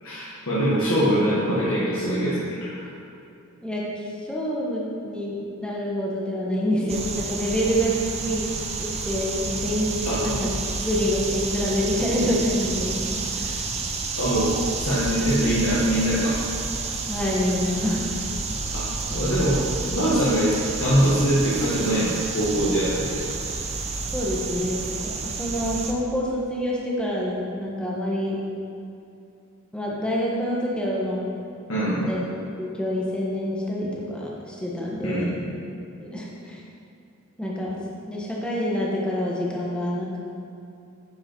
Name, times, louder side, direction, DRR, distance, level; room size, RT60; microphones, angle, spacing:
voice 1, 0.0-2.9 10.0-10.2 14.2-14.5 14.8-16.4 18.7-19.6 19.9-23.2 31.7-32.2 35.0-35.5, equal, 65° left, -9 dB, 1.6 m, -23 dB
voice 2, 4.1-8.5 8.8-10.5 10.8-13.5 17.1-18.1 24.1-28.4 29.7-31.3 32.0-32.2 32.6-35.3 36.0-36.6 37.4-37.8 38.1-40.2, equal, 5° left, -5 dB, 1.1 m, -27 dB
sound 1, 6.9-25.9, right 3 dB, 30° right, 0.6 m, -30 dB
9.8 x 5.4 x 4.5 m, 2.7 s
head